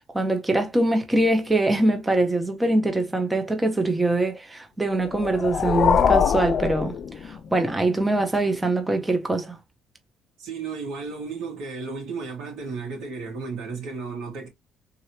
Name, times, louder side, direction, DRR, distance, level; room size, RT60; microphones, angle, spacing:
voice 1, 0.1-6.9 7.2-9.6, right 2 dB, 10° right, 0.7 m, -23 dB
sound 1, 5.0-7.7, left 7 dB, 45° left, 0.3 m, -23 dB
voice 2, 10.4-14.5, right 4 dB, 75° right, 2.1 m, -33 dB
3.8 x 3.0 x 2.8 m
cardioid pair, 140°, 0 cm